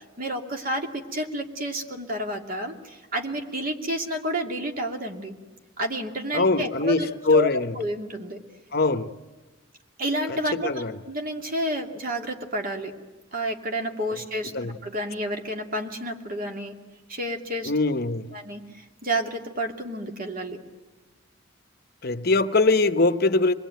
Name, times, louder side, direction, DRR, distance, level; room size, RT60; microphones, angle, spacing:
voice 1, 0.0-5.3 5.8-7.5 7.7-8.4 10.0-12.9 13.3-16.7 17.1-17.7 18.3-20.6, right 1 dB, 45° right, 2.7 m, -30 dB
voice 2, 6.3-7.7 8.7-9.1 10.3-10.9 14.1-14.2 14.5-14.7 17.6-18.3 22.0-23.5, left 3 dB, 45° left, 1.0 m, -22 dB
26.5 x 21.0 x 9.3 m
head